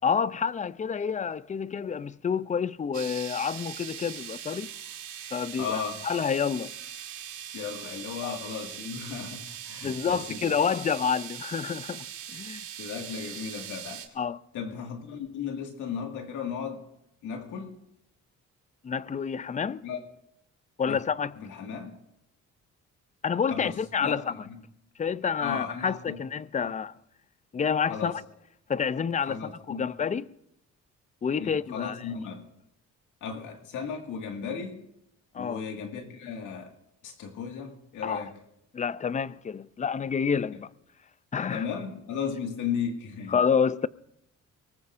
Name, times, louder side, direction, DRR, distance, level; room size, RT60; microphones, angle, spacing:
voice 1, 0.0-4.7 5.3-6.7 8.2-8.4 9.8-12.0 12.3-12.6 14.2-14.4 18.8-19.8 20.8-21.4 23.2-24.3 25.0-26.9 27.5-28.1 28.7-30.3 31.2-32.0 35.3-35.6 38.0-38.2 38.7-40.7 41.3-41.7 43.3-43.9, left 6 dB, 25° left, 0.4 m, -28 dB
sound 1, 2.9-14.1, right 9 dB, 75° right, 1.8 m, -41 dB
voice 2, 5.6-6.0 7.5-10.4 12.8-14.0 14.5-16.8 17.2-17.8 19.8-20.0 20.9-21.0 21.4-22.0 23.5-24.6 25.4-26.2 26.6-26.7 27.9-28.2 29.2-29.9 31.4-32.4 33.2-34.8 35.3-36.7 37.0-38.4 41.5-43.4, left 6 dB, 80° left, 2.0 m, -35 dB
23.5 x 19.0 x 2.6 m
cardioid pair, 90°, 30 cm